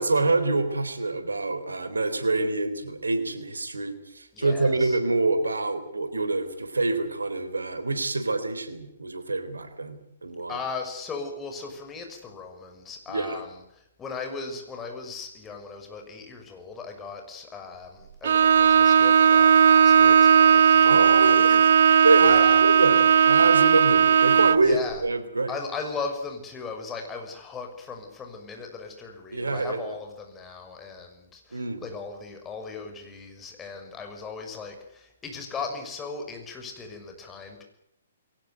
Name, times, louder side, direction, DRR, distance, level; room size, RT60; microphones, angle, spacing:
voice 1, 0.0-10.6 13.1-13.4 20.8-25.5 29.3-29.9 31.5-31.8, right 2 dB, 80° right, 10 dB, 3.8 m, -26 dB
voice 2, 4.3-5.0 10.5-21.6 22.3-22.6 24.6-25.0 25.5-37.6, left 4 dB, 15° left, 3 dB, 6.2 m, -38 dB
Bowed string instrument, 18.2-24.7, right 7 dB, 60° right, 0.8 m, -17 dB
22.5 x 18.5 x 9.3 m, 0.77 s
figure-of-eight pair, 125°, 0 cm